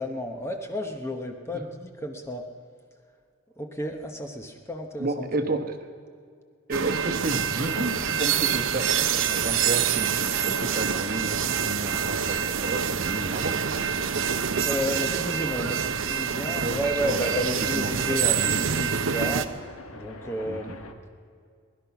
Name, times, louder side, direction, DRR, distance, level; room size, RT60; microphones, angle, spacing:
voice 1, 0.0-2.4 3.6-5.6 14.6-19.5 19.9-20.9, equal, 10° left, 3 dB, 1.0 m, -32 dB
voice 2, 5.0-5.8 6.7-14.0 16.6-17.2 17.6-18.6 20.4-20.8, right 2 dB, 40° right, 5 dB, 1.2 m, -32 dB
sound 1, 6.7-19.5, right 7 dB, 65° right, 0.7 m, -26 dB
sound 2, 7.4-20.9, left 3 dB, 80° left, 1.2 m, -43 dB
20.5 x 11.5 x 5.9 m, 2.2 s
head